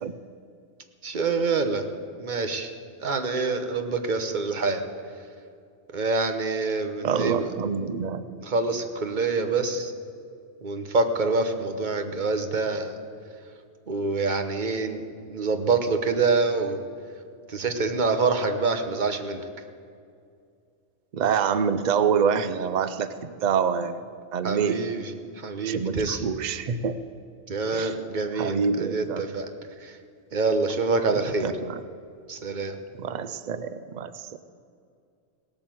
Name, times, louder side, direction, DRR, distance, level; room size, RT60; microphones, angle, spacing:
voice 1, 1.0-1.9 2.2-2.7 3.0-4.8 5.9-7.5 8.4-9.9 10.6-13.0 13.9-16.8 17.5-19.4 24.4-25.1 25.4-26.2 27.5-29.5 29.8-30.0 30.3-31.5 32.3-32.8, right 3 dB, 40° right, 7 dB, 1.0 m, -26 dB
voice 2, 7.0-8.3 21.1-24.0 24.3-24.8 25.7-27.0 27.7-27.9 28.3-29.2 31.1-31.8 33.0-34.4, right 6 dB, 80° right, 12 dB, 0.4 m, -26 dB
17.0 x 8.9 x 7.6 m, 2.3 s
omnidirectional pair, 1.4 m